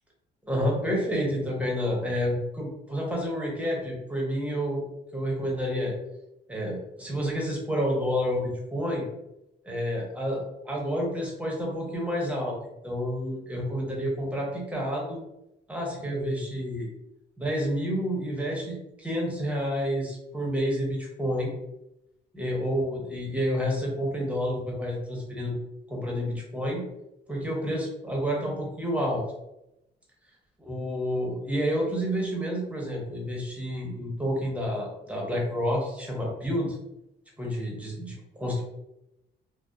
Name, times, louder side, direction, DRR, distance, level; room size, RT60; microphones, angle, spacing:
voice 1, 0.4-4.8 5.1-5.9 6.5-9.1 9.6-12.6 12.8-15.2 15.7-16.9 17.4-21.5 22.3-25.6 25.9-26.8 27.3-29.2 30.7-36.8 37.4-38.6, equal, 5° right, -2 dB, 0.8 m, -29 dB
2.7 x 2.1 x 2.3 m, 0.88 s
cardioid pair, 90°, 20 cm